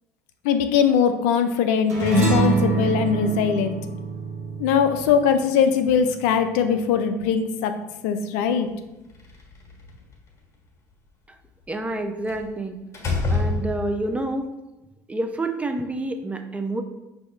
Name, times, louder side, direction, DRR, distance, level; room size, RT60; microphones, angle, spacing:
voice 1, 0.4-3.8 4.6-7.7 8.0-8.7, left 7 dB, 70° left, 8 dB, 0.4 m, -21 dB
sound 1, 1.9-6.6, right 3 dB, 85° right, 1.2 m, -25 dB
Slam, 9.1-10.1 12.3-12.5 12.9-14.2, left 3 dB, 35° left, 1.3 m, -27 dB
voice 2, 11.7-12.8 13.3-14.5 15.1-16.8, right 2 dB, 15° right, 6 dB, 0.5 m, -28 dB
5.5 x 2.7 x 3.2 m, 1.0 s
hypercardioid pair, 70°, 9 cm